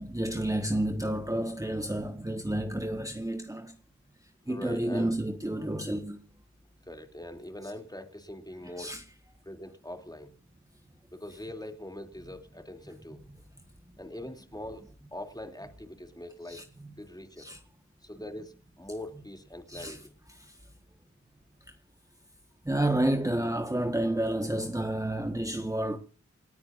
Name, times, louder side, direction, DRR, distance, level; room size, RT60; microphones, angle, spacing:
voice 1, 0.0-3.7 4.5-6.2 8.8-9.0 16.5-16.9 17.4-17.6 19.7-20.0 20.3-20.5 22.6-26.0, right 1 dB, 10° right, 1.4 m, -30 dB
voice 2, 4.5-5.1 6.8-8.9 9.4-10.3 11.1-13.2 14.0-14.8 15.1-16.6 17.0-17.5 18.0-20.1, left 1 dB, 15° left, 2.9 m, -42 dB
28.5 x 9.7 x 2.6 m
wide cardioid pair, 70°, 29 cm